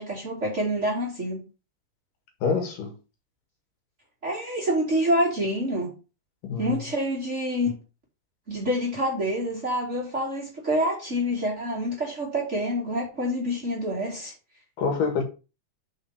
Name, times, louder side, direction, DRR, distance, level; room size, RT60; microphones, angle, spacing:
voice 1, 0.0-1.4 4.2-5.9 6.6-7.8 8.5-14.3, equal, 25° right, 2.4 m, -27 dB
voice 2, 2.4-2.9 6.4-6.8 14.8-15.2, left 5 dB, 75° left, 3.2 m, -26 dB
6.1 x 5.9 x 4.8 m
omnidirectional pair, 3.8 m